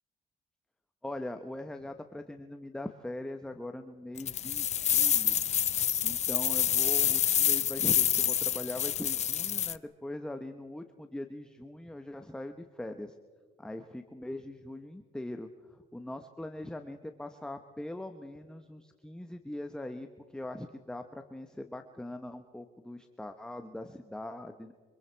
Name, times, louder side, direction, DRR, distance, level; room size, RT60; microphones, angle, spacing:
voice 1, 1.0-5.4 6.0-13.1 13.6-24.7, left 1 dB, 5° left, 7 dB, 1.1 m, -41 dB
sound 1, 4.2-9.7, left 9 dB, 40° left, 0.6 m, -27 dB
27.0 x 25.5 x 4.7 m, 1.5 s
cardioid pair, 110°, 17 cm